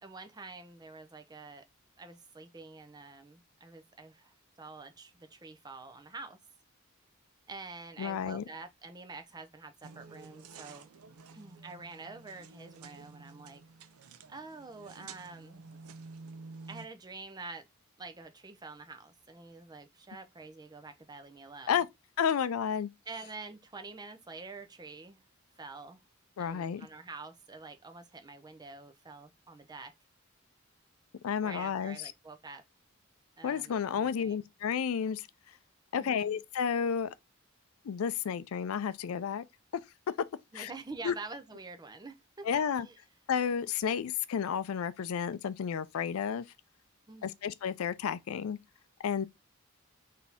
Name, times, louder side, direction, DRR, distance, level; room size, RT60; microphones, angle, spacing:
voice 1, 0.0-1.6 2.0-6.4 7.5-10.9 11.3-13.6 14.3-15.7 16.7-17.7 18.0-21.8 23.1-25.2 25.6-26.0 26.4-29.9 31.4-32.6 33.4-34.4 35.9-36.4 40.5-42.5 42.8-43.0 47.1-47.4, right 3 dB, 20° right, 0.5 m, -47 dB
voice 2, 8.0-8.4 21.7-21.9 22.2-22.9 26.4-26.8 31.2-32.0 33.4-35.3 35.9-37.1 37.8-39.4 40.5-40.7 41.0-41.1 42.4-42.9 43.3-46.4 47.2-48.6 49.0-49.3, left 7 dB, 75° left, 0.4 m, -31 dB
sound 1, 9.8-16.9, right 4 dB, 85° right, 0.5 m, -50 dB
4.0 x 2.7 x 3.5 m
head